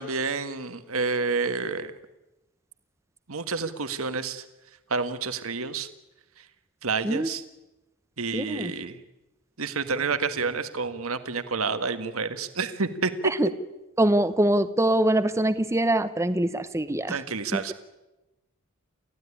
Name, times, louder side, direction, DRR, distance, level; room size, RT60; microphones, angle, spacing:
voice 1, 0.0-1.9 3.3-4.4 4.9-5.9 6.8-7.4 8.2-9.0 9.6-13.3 17.1-17.7, right 4 dB, 70° right, 10 dB, 1.6 m, -29 dB
voice 2, 8.3-8.7 13.2-13.5 14.0-17.2 17.5-17.7, right 1 dB, 15° right, 11 dB, 0.8 m, -24 dB
29.0 x 15.5 x 9.9 m, 1.0 s
head